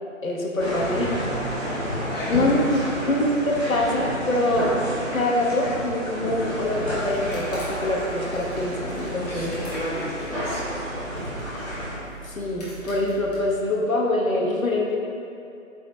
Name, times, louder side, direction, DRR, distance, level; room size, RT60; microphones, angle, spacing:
voice 1, 0.2-1.1 2.3-2.8 3.1-4.7 5.1-9.5 12.2-15.0, left 1 dB, 70° left, -1 dB, 1.3 m, -24 dB
sound 1, 0.6-11.9, equal, 5° right, 1.2 m, -30 dB
voice 2, 2.1-2.9 9.3-10.7, left 1 dB, 45° left, -7 dB, 0.9 m, -34 dB
sound 2, 6.5-13.6, right 1 dB, 30° left, 1.3 m, -41 dB
8.0 x 4.1 x 3.2 m, 2.7 s
figure-of-eight pair, 150°, 42 cm